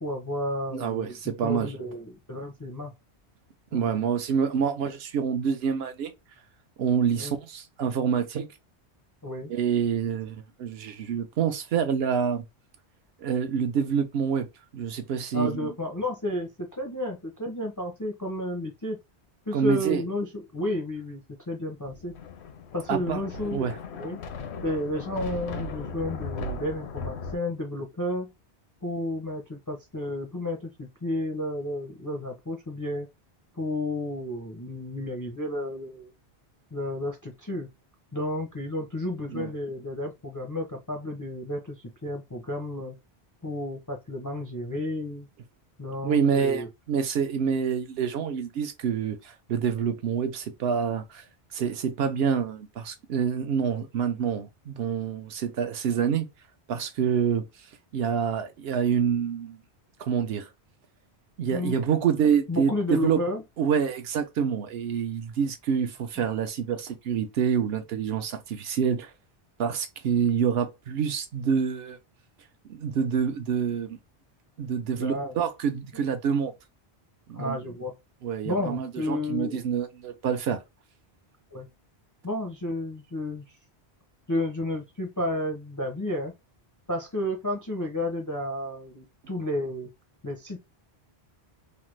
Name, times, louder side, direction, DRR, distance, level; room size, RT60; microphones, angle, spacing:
voice 1, 0.0-2.9 3.7-4.0 7.1-7.4 9.2-9.5 15.3-19.0 19.5-22.1 22.7-24.2 24.6-28.3 28.8-33.1 33.5-36.1 36.7-37.7 38.1-43.0 43.4-45.3 45.8-46.7 61.5-61.8 62.5-63.4 75.0-75.3 75.9-76.0 77.3-77.9 78.4-79.6 81.5-81.7 82.2-83.4 84.3-86.3 86.9-89.9 90.2-90.6, left 1 dB, 30° left, 0.4 m, -32 dB
voice 2, 0.7-1.7 3.7-6.1 6.8-8.5 9.5-12.4 13.2-14.5 14.7-15.7 19.5-20.0 22.9-23.2 23.5-23.7 39.3-39.5 46.0-51.2 51.5-56.3 56.7-57.4 57.9-59.6 60.0-60.5 61.4-63.2 63.6-69.1 69.6-72.0 72.7-74.0 74.6-76.5 77.3-77.6 78.2-80.6, right 7 dB, 70° right, 0.8 m, -27 dB
Thunder, 21.9-27.4, left 4 dB, 80° left, 0.9 m, -37 dB
3.2 x 2.0 x 3.0 m
omnidirectional pair, 1.1 m